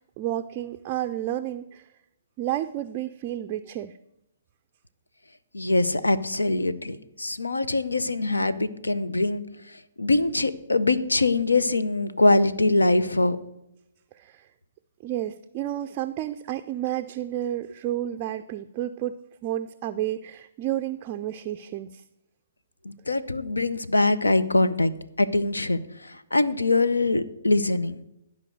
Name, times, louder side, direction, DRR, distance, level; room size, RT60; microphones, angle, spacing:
voice 1, 0.0-1.9 2.4-3.9 14.1-14.4 15.0-22.0, right 12 dB, 30° right, 8 dB, 0.4 m, -31 dB
voice 2, 5.5-9.4 10.0-13.4 22.8-24.9 25.2-28.0, left 2 dB, 80° left, 14 dB, 0.6 m, -23 dB
12.0 x 5.2 x 6.5 m, 0.88 s
figure-of-eight pair, 125°, 0 cm